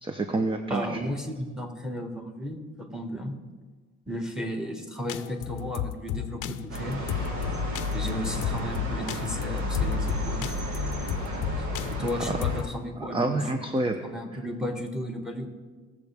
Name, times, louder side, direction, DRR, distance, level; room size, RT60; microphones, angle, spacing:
voice 1, 0.0-0.8 11.3-11.4 12.3-12.4 13.0-13.9, right 2 dB, 15° right, 6 dB, 0.8 m, -28 dB
voice 2, 0.7-3.4 4.1-7.0 7.9-10.5 11.6-13.6 14.0-15.5, equal, ahead, 3 dB, 1.8 m, -34 dB
sound 1, 5.1-12.7, left 11 dB, 85° left, 0.6 m, -33 dB
sound 2, 6.7-12.6, left 1 dB, 70° right, 2.2 m, -31 dB
18.5 x 7.2 x 3.5 m, 1.4 s
cardioid pair, 90°, 30 cm